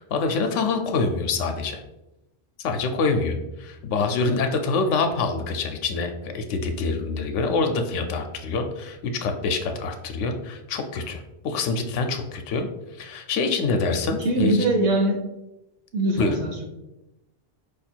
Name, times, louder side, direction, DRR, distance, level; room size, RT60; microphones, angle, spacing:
voice 1, 0.0-1.8 2.6-14.7 16.2-16.4, left 4 dB, 85° left, 5 dB, 0.9 m, -26 dB
voice 2, 14.2-15.3 15.9-16.6, right 1 dB, 75° right, 1 dB, 1.2 m, -22 dB
5.0 x 2.4 x 4.3 m, 0.95 s
omnidirectional pair, 1.2 m